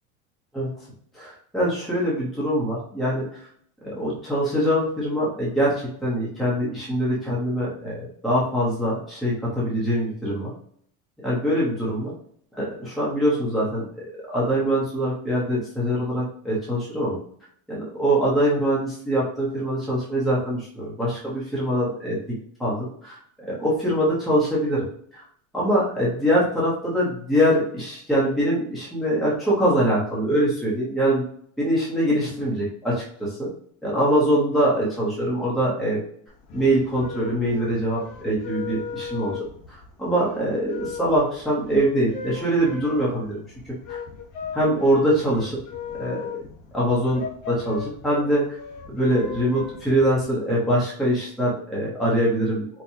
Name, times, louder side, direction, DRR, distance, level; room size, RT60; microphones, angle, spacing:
voice 1, 1.1-3.2 3.8-10.5 11.2-12.1 12.6-17.2 17.7-22.2 22.6-24.8 25.1-25.2 25.5-31.2 31.6-33.5 33.8-36.0 36.5-43.4 43.6-44.0 44.5-45.6 46.0-46.3 46.7-48.6 48.9-52.7, equal, ahead, -7 dB, 0.9 m, -23 dB
sound 1, 36.3-50.2, left 6 dB, 50° left, 1.0 m, -37 dB
4.6 x 2.2 x 2.7 m, 0.63 s
supercardioid pair, 150°, 38 cm